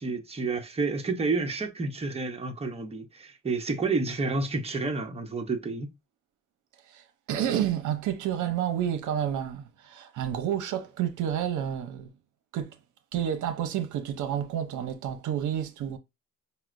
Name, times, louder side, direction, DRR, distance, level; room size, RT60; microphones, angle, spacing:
voice 1, 0.0-5.9, right 3 dB, 20° right, 0.8 m, -30 dB
voice 2, 6.9-12.1 12.5-12.7 13.1-16.0, right 10 dB, 75° right, 0.6 m, -30 dB
5.5 x 2.0 x 2.5 m
cardioid pair, 90°, 30 cm